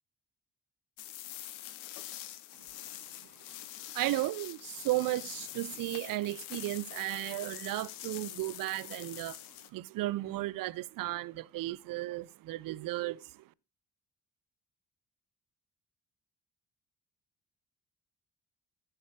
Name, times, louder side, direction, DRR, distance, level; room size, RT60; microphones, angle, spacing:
sound 1, 1.0-9.7, left 14 dB, 65° left, 1.1 m, -45 dB
voice 1, 3.9-9.4 9.7-13.4, right 17 dB, 45° right, 0.7 m, -34 dB
15.0 x 6.6 x 4.8 m
figure-of-eight pair, 40°, 45 cm